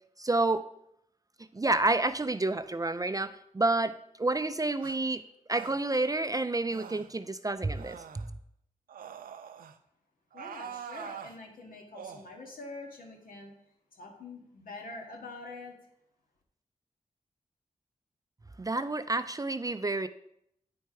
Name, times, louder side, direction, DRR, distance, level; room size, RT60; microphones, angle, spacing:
voice 1, 0.2-0.6 1.5-3.9 4.2-5.2 5.5-8.0 18.6-20.1, right 2 dB, 25° right, 11 dB, 0.4 m, -29 dB
sound 1, 4.8-5.0 5.5-5.8 6.7-7.1 7.7-8.3 8.9-9.8 10.3-11.4 11.9-12.3, right 8 dB, 90° right, 0.4 m, -44 dB
voice 2, 10.3-13.5 13.9-15.7, left 2 dB, 80° left, 0 dB, 1.8 m, -45 dB
9.4 x 4.3 x 4.7 m, 0.75 s
cardioid pair, 45°, 14 cm